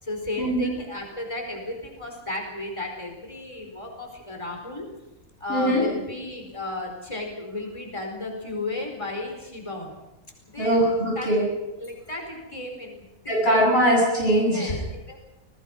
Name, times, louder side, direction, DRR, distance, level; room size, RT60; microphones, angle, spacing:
voice 1, 0.0-4.9 5.4-9.9 10.5-10.8 11.2-11.3 11.8-13.5 14.4-15.2, left 2 dB, 20° left, 2 dB, 4.6 m, -34 dB
voice 2, 5.5-5.8 10.6-11.5 13.3-14.8, equal, 45° left, -4 dB, 8.4 m, -21 dB
29.5 x 21.0 x 5.4 m, 1.0 s
omnidirectional pair, 1.5 m